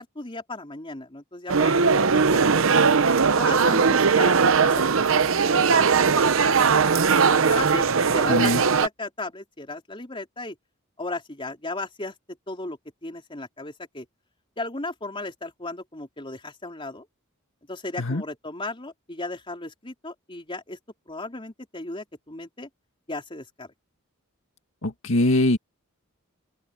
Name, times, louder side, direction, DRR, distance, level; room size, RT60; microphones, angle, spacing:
voice 1, 0.0-2.7 3.4-4.8 5.1-7.0 7.5-10.6 11.0-12.1 12.5-14.1 14.6-17.1 17.7-20.8 21.1-22.7 23.1-23.7, left 2 dB, 25° left, 3.7 m, -36 dB
sound 1, 1.5-8.9, right 5 dB, 65° right, 0.8 m, -19 dB
voice 2, 8.3-8.6 18.0-18.2 24.8-25.6, left 1 dB, 70° left, 2.1 m, -22 dB
open air
head